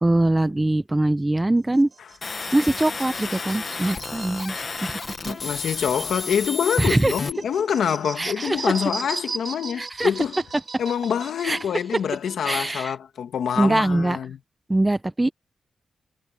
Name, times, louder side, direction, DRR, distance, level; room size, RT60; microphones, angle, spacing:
voice 1, 0.0-1.9 2.5-5.4 6.8-7.1 8.2-8.6 9.8-10.1 11.4-11.6 12.4-12.9 13.6-14.2 14.7-15.3, right 2 dB, 10° right, 0.5 m, -22 dB
sound 1, 1.6-12.8, right 4 dB, 35° right, 3.7 m, -39 dB
sound 2, 2.2-7.3, left 4 dB, 30° left, 0.9 m, -32 dB
voice 2, 5.2-10.4 10.8-14.4, left 8 dB, 80° left, 2.0 m, -26 dB
wide cardioid pair, 175°, 0 cm